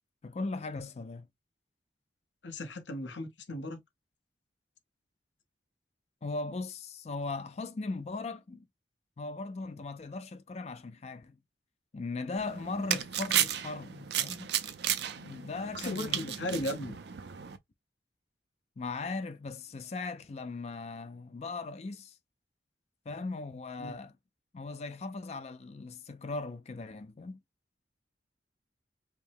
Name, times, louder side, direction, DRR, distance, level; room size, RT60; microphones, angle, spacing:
voice 1, 0.2-1.3 6.2-8.7 9.2-11.4 11.9-14.5 15.2-16.8 18.8-22.2 23.1-24.1 24.5-27.4, left 3 dB, 35° left, 0.4 m, -38 dB
voice 2, 2.4-3.8 15.8-17.0 23.8-24.0, left 1 dB, 90° left, 1.0 m, -36 dB
sound 1, 12.4-17.6, right 10 dB, 65° right, 0.5 m, -34 dB
4.9 x 2.1 x 3.4 m
head